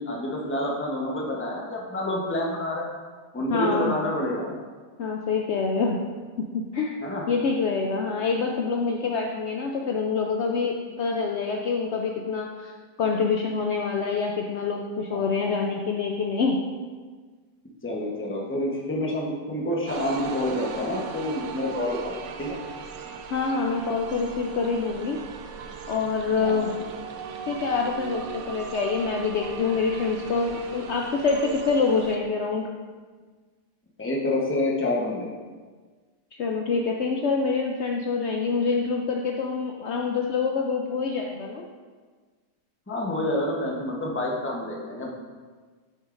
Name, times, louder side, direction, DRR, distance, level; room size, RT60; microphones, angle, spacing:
voice 1, 0.0-2.9 3.3-4.6 7.0-7.2 15.1-15.7 17.8-22.6 26.4-26.7 34.0-35.3 42.9-45.1, left 1 dB, 10° left, -2 dB, 0.6 m, -28 dB
voice 2, 3.5-3.9 5.0-6.0 6.4-7.0 7.3-12.7 13.0-16.6 23.3-25.2 25.9-26.7 27.5-32.7 36.3-41.6, left 4 dB, 80° left, 1 dB, 0.6 m, -26 dB
sound 1, 19.9-32.2, right 6 dB, 65° right, 1.0 m, -38 dB
8.8 x 6.5 x 2.5 m, 1.5 s
omnidirectional pair, 1.8 m